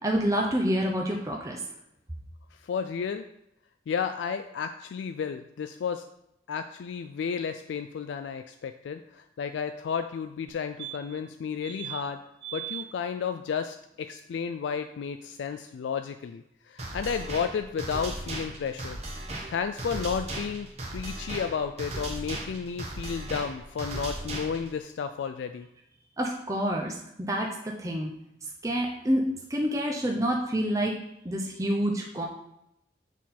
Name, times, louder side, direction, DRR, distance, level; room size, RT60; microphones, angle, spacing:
voice 1, 0.0-1.6 26.2-28.1 28.6-31.0 31.2-32.3, equal, 15° right, 0 dB, 0.6 m, -28 dB
voice 2, 2.5-3.2 3.9-6.0 6.5-12.2 12.5-19.0 19.5-20.7 20.9-25.7, left 6 dB, 80° left, 9 dB, 0.3 m, -32 dB
sound 1, 10.5-10.6 10.8-11.3 11.6-12.0 12.4-12.9 15.2-15.3 15.5-15.6, right 14 dB, 75° right, 0.6 m, -39 dB
sound 2, 16.8-24.8, right 1 dB, 35° right, 1.1 m, -37 dB
7.2 x 3.9 x 4.2 m, 0.81 s
head